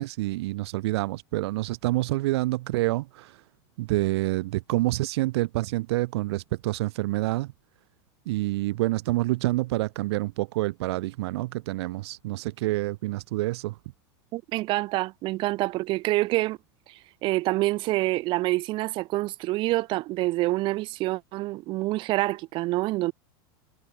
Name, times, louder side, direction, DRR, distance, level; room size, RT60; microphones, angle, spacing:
voice 1, 0.0-3.4 3.8-7.5 8.3-13.8, right 19 dB, 80° right, 0.4 m, -27 dB
voice 2, 14.3-16.6 17.2-23.1, right 19 dB, 40° right, 0.7 m, -26 dB
supercardioid pair, 150°, 14 cm